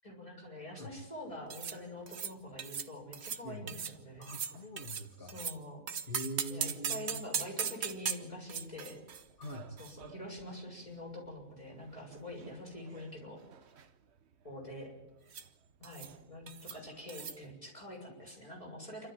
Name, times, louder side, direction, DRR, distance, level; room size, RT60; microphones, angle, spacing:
voice 1, 0.0-4.3 5.3-5.9 6.5-9.0 9.8-13.4 14.4-14.9 15.8-19.1, left 1 dB, 25° left, -2 dB, 7.1 m, -45 dB
sound 1, 1.5-1.8 2.1-2.3 2.6-2.9 3.1-3.4 3.7-5.6 5.9-10.6 10.8-10.9 11.7-12.6 12.9-13.1 13.4-13.8 15.3-15.5 15.8-16.2 16.5-16.8 17.1-17.4, right 7 dB, 55° right, 1.1 m, -39 dB
voice 2, 3.4-3.8 4.2-5.4 6.1-7.3 9.4-9.7, equal, 40° left, 2 dB, 2.3 m, -43 dB
28.0 x 13.0 x 9.2 m, 0.99 s
omnidirectional pair, 1.5 m